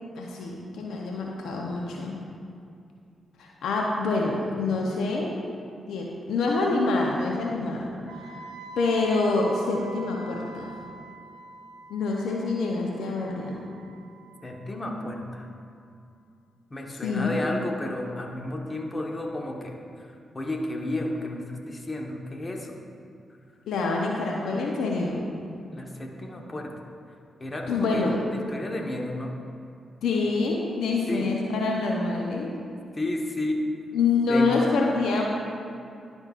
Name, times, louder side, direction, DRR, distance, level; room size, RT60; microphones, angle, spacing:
voice 1, 0.2-2.2 3.4-5.3 5.9-7.9 8.2-8.3 8.8-10.7 11.9-13.6 17.0-17.4 23.7-25.3 27.7-28.2 30.0-32.6 33.9-35.2, left 3 dB, 75° left, -1 dB, 0.7 m, -26 dB
Wind instrument woodwind instrument, 8.1-16.0, right 1 dB, 75° right, 0.7 m, -46 dB
voice 2, 14.4-15.4 16.7-22.8 25.7-26.7 27.4-28.1 28.5-29.3 31.1-31.3 32.9-33.6 34.3-34.6, left 1 dB, 35° left, 1 dB, 1.1 m, -32 dB
11.5 x 5.3 x 2.5 m, 2.5 s
hypercardioid pair, 40°, 0 cm